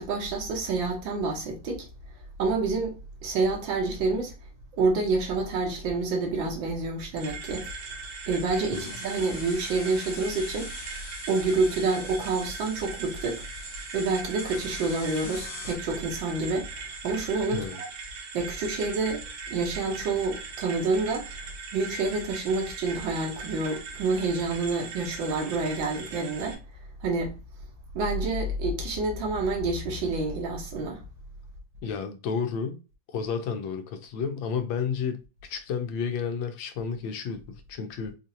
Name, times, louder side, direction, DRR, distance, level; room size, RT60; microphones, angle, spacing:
voice 1, 0.0-1.9 2.4-4.3 4.8-7.7 8.3-10.7 11.3-13.4 13.9-17.9 18.3-21.3 21.7-26.6 27.0-27.4 27.9-31.0, right 3 dB, 85° right, 1.6 m, -28 dB
sound 1, 7.2-26.5, right 5 dB, 65° right, 1.3 m, -40 dB
sound 2, 8.7-15.8, left 5 dB, 70° left, 1.3 m, -44 dB
voice 2, 31.8-32.8 33.1-38.2, left 6 dB, 90° left, 1.4 m, -31 dB
4.3 x 2.5 x 2.7 m
omnidirectional pair, 2.0 m